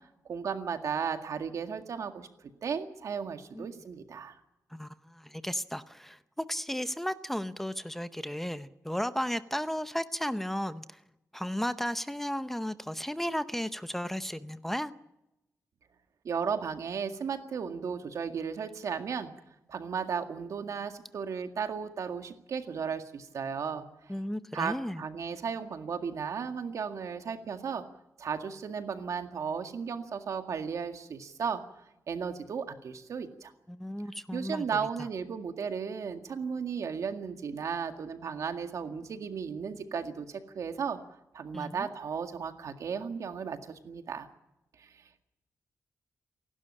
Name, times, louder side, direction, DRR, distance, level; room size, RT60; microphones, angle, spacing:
voice 1, 0.3-2.3 2.6-4.4 16.2-19.3 19.7-24.1 24.5-27.8 28.2-33.5 34.3-41.0 41.3-44.3 44.8-45.2, right 6 dB, 70° right, 7 dB, 2.0 m, -35 dB
voice 2, 4.7-11.0 11.3-14.9 24.1-25.0 33.7-35.1 41.5-41.9, equal, 5° left, 12 dB, 0.7 m, -34 dB
28.0 x 12.0 x 9.9 m, 0.92 s
wide cardioid pair, 135°, 6 cm